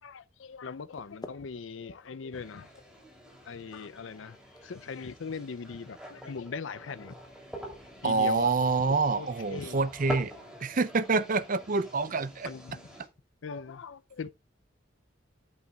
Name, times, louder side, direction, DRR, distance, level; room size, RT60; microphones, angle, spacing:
voice 1, 0.0-2.8 3.4-4.4 4.6-7.2 8.0-8.5 8.9-9.9 12.4-12.9 13.4-14.3, left 5 dB, 70° left, 0.5 m, -40 dB
sound 1, 0.6-6.5, left 1 dB, 20° left, 0.8 m, -54 dB
sound 2, 2.3-13.1, right 1 dB, 5° right, 3.1 m, -45 dB
voice 2, 8.0-10.3 10.6-12.5, right 4 dB, 40° right, 0.5 m, -27 dB
10.5 x 8.3 x 2.4 m
head